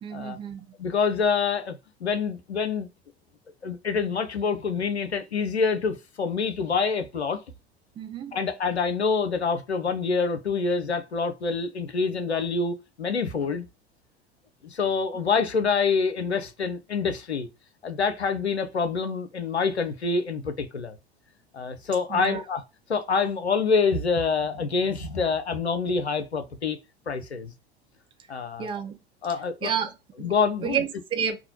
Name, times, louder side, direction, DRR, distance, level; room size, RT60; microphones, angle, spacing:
voice 1, 0.0-0.7 8.0-8.4 22.1-22.4 28.6-29.0 29.6-30.3 30.6-31.4, right 7 dB, 15° right, 0.3 m, -30 dB
voice 2, 0.8-2.9 3.6-7.4 8.3-13.7 14.6-17.5 17.8-21.0 21.5-22.6 22.9-26.8 27.1-27.5 28.3-28.7 29.2-29.7 30.2-30.8, left 5 dB, 90° left, 0.5 m, -26 dB
2.9 x 2.1 x 2.5 m
figure-of-eight pair, 80°, 32 cm